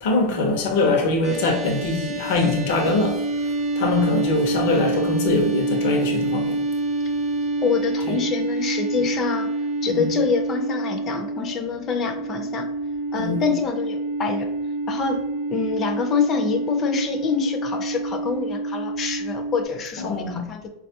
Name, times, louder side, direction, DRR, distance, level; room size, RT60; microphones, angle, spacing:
voice 1, 0.0-3.2 3.8-6.6 8.1-8.2 9.9-10.0 13.2-13.5 20.0-20.4, left 2 dB, 70° left, 0.7 m, -22 dB
sound 1, 1.2-19.7, right 2 dB, 35° right, 0.7 m, -27 dB
voice 2, 7.6-9.5 9.8-12.7 13.1-14.5 14.9-20.7, left 5 dB, 35° left, 0.5 m, -26 dB
4.0 x 2.3 x 2.7 m
supercardioid pair, 120°, 0 cm